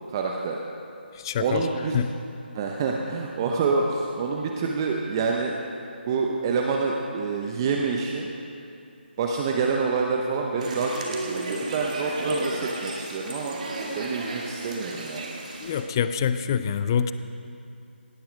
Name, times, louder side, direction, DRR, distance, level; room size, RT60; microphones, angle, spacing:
voice 1, 0.1-0.6 1.4-2.0 2.5-5.5 6.1-8.3 9.2-13.6 13.9-15.3, right 4 dB, 25° right, 0 dB, 0.8 m, -27 dB
voice 2, 1.1-1.7 1.9-2.1 15.6-17.1, left 7 dB, 20° left, 11 dB, 0.3 m, -25 dB
sound 1, 10.6-15.8, right 2 dB, 40° right, 1.9 m, -33 dB
17.5 x 8.8 x 5.1 m, 2.7 s
figure-of-eight pair, 155°, 6 cm